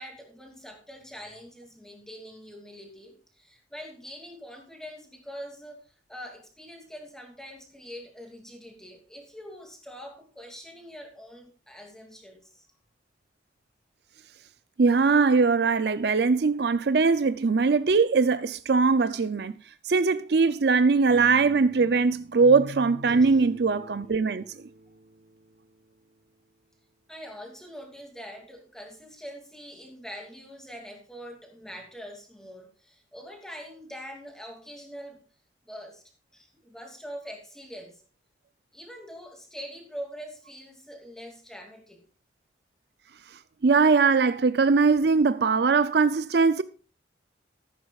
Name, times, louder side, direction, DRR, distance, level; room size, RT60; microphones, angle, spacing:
voice 1, 0.0-12.7 23.1-23.4 27.1-35.2 35.6-36.0 36.3-38.0 38.7-42.0, equal, 5° left, 2.5 m, -44 dB
voice 2, 14.8-19.5 19.8-24.4 43.6-46.6, right 4 dB, 60° right, 0.5 m, -21 dB
sound 1, 21.1-26.2, equal, 75° right, 2.4 m, -45 dB
14.0 x 11.5 x 2.4 m
head